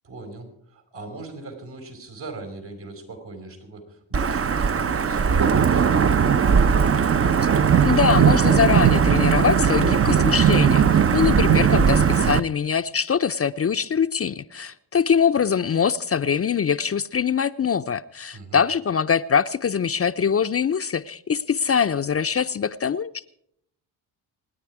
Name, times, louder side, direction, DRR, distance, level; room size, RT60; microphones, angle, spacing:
voice 1, 0.0-6.4 18.3-18.6, right 2 dB, 70° right, 4 dB, 4.9 m, -39 dB
Wind / Thunder / Rain, 4.1-12.4, right 7 dB, 35° right, 0.6 m, -18 dB
voice 2, 7.8-23.3, left 7 dB, 35° left, 10 dB, 0.6 m, -23 dB
26.0 x 9.8 x 4.8 m, 0.70 s
supercardioid pair, 60°, 44 cm